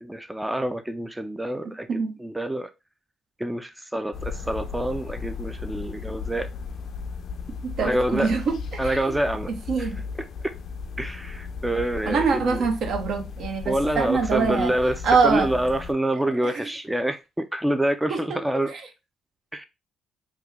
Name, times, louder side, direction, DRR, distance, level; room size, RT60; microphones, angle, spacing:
voice 1, 0.0-2.7 3.4-6.5 7.8-8.3 8.8-9.5 9.8-9.9 11.0-12.7 13.7-18.7 19.5-19.6, right 1 dB, 10° right, 0.3 m, -27 dB
sound 1, 4.1-15.9, left 5 dB, 60° left, 0.4 m, -35 dB
voice 2, 7.6-9.1 9.7-10.0 12.1-14.7 15.0-15.5 16.4-16.5 18.1-18.4 18.7-18.8, right 5 dB, 70° right, 0.8 m, -24 dB
3.0 x 2.2 x 3.5 m
cardioid pair, 90°, 0 cm